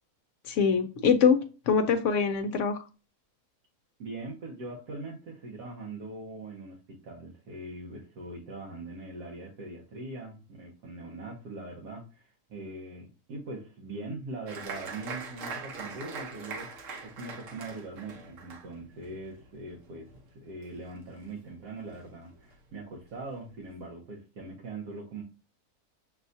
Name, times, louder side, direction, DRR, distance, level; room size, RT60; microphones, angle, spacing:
voice 1, 0.5-2.8, left 6 dB, 65° left, 7 dB, 0.8 m, -24 dB
voice 2, 4.0-25.2, right 2 dB, 80° right, -2 dB, 1.5 m, -42 dB
Applause, 14.5-21.5 21.8-22.5 22.9-23.0 23.3-23.8, right 4 dB, 60° right, 1.1 m, -42 dB
6.7 x 2.3 x 2.6 m, 0.33 s
omnidirectional pair, 1.7 m